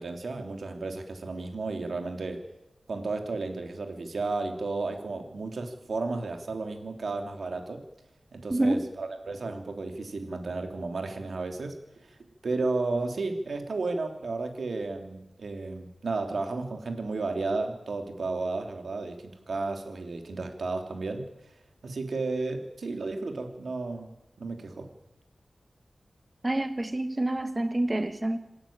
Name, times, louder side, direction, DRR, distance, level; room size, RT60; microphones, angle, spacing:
voice 1, 0.0-2.4 2.9-7.8 8.3-11.8 12.1-12.2 12.4-21.3 21.8-24.9, right 3 dB, 80° right, 5 dB, 3.0 m, -33 dB
voice 2, 8.5-8.8 26.4-28.4, right 1 dB, 25° right, 9 dB, 1.7 m, -27 dB
26.5 x 13.0 x 8.9 m, 0.92 s
wide cardioid pair, 85°, 0 cm